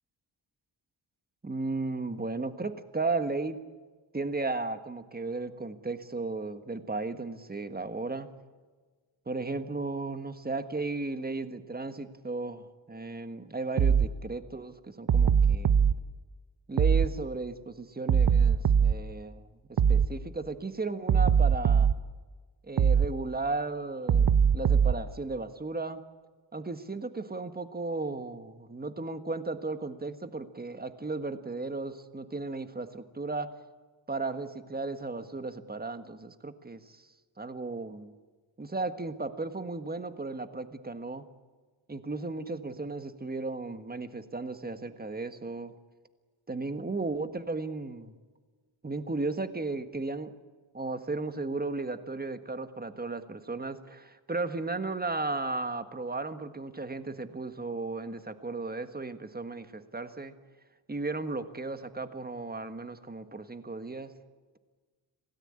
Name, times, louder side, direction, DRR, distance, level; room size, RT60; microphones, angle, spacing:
voice 1, 1.4-3.6 4.1-8.3 9.2-15.8 16.7-21.9 22.6-26.0 26.5-33.5 34.1-37.1 37.4-38.1 38.6-41.3 41.9-45.7 46.5-48.1 48.8-50.3 50.7-60.3 60.9-64.1, right 3 dB, 20° right, 10 dB, 1.6 m, -35 dB
sound 1, 13.8-14.1 15.1-15.9 16.8-17.1 18.1-19.0 19.8-20.1 21.1-22.0 22.8-23.1 24.1-25.0, right 7 dB, 55° right, 0.8 m, -21 dB
27.0 x 17.5 x 8.9 m, 1.4 s
wide cardioid pair, 140°, 45 cm